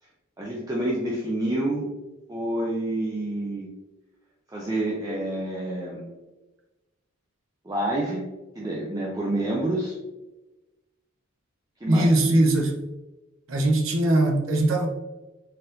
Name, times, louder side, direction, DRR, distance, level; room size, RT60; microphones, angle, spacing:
voice 1, 0.4-1.9 2.3-3.7 4.5-6.1 7.6-8.2 8.5-9.9 11.8-12.4, right 1 dB, 15° right, -5 dB, 0.6 m, -28 dB
voice 2, 11.9-12.7 13.5-14.9, right 1 dB, 70° right, 2 dB, 0.8 m, -20 dB
4.3 x 4.0 x 2.5 m, 1.1 s
head